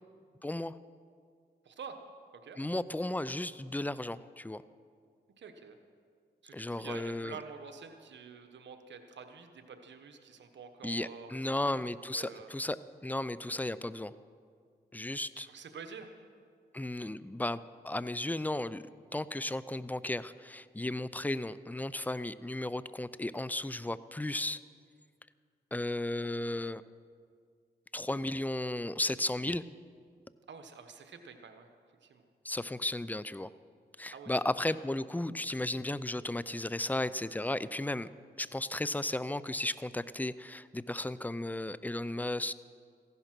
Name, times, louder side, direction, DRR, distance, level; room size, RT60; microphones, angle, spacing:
voice 1, 0.4-0.8 2.6-4.6 6.5-7.4 10.8-12.8 13.0-14.1 14.9-15.5 16.7-18.8 19.1-24.6 25.7-26.8 27.9-29.6 32.4-33.5 34.0-38.1 38.4-42.5, left 1 dB, 10° left, 16 dB, 0.5 m, -34 dB
voice 2, 1.6-2.0 2.4-2.6 5.4-5.8 6.4-11.8 12.1-12.6 15.3-16.1 30.5-31.7 32.0-32.2 34.1-34.3 34.7-34.8, right 6 dB, 90° right, 7 dB, 1.1 m, -48 dB
15.5 x 11.0 x 6.0 m, 2.1 s
cardioid pair, 50°, 18 cm